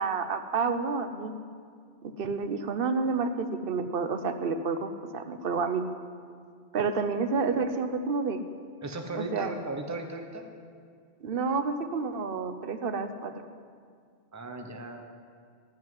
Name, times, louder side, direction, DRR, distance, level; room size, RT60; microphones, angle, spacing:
voice 1, 0.0-1.3 2.2-5.9 6.7-8.4 9.1-9.5 11.2-13.3, right 4 dB, 60° right, 9 dB, 1.0 m, -29 dB
voice 2, 8.8-10.5 14.3-15.0, right 2 dB, 15° right, 5 dB, 0.9 m, -36 dB
15.0 x 5.6 x 9.6 m, 2.1 s
omnidirectional pair, 1.1 m